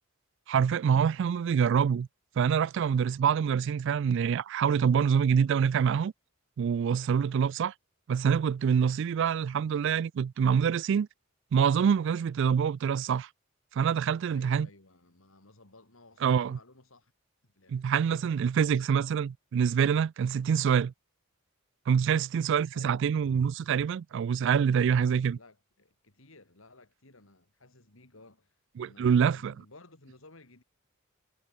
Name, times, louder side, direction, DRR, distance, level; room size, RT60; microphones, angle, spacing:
voice 1, 0.5-2.1 2.4-6.1 6.6-7.7 8.1-11.1 11.5-13.3 13.7-14.7 16.2-16.6 17.7-20.9 21.9-25.4 28.8-29.5, right 7 dB, 60° right, 0.3 m, -26 dB
voice 2, 14.3-17.1 17.4-17.9 22.7-23.1 24.8-28.6 28.8-30.6, left 2 dB, 70° left, 3.6 m, -56 dB
head